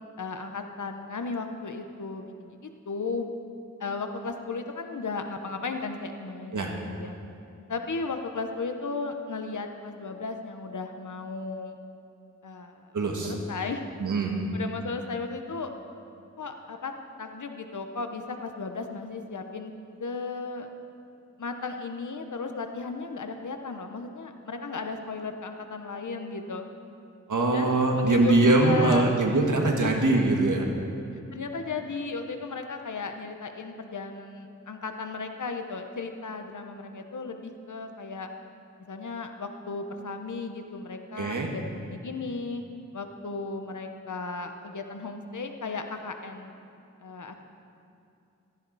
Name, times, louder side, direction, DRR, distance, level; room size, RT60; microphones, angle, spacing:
voice 1, 0.2-3.3 3.8-7.1 7.7-11.8 12.4-12.9 13.2-13.9 14.5-15.7 16.4-16.9 17.2-19.7 20.0-20.7 21.4-26.7 27.5-29.0 29.8-30.0 31.3-38.3 38.9-42.6 42.9-46.5 47.0-47.4, left 4 dB, 80° left, 5 dB, 1.1 m, -35 dB
voice 2, 12.9-13.3 14.0-14.4 27.3-30.7 41.2-41.5, right 2 dB, 90° right, 1 dB, 1.7 m, -22 dB
15.5 x 14.5 x 4.2 m, 2.6 s
wide cardioid pair, 65°, 30 cm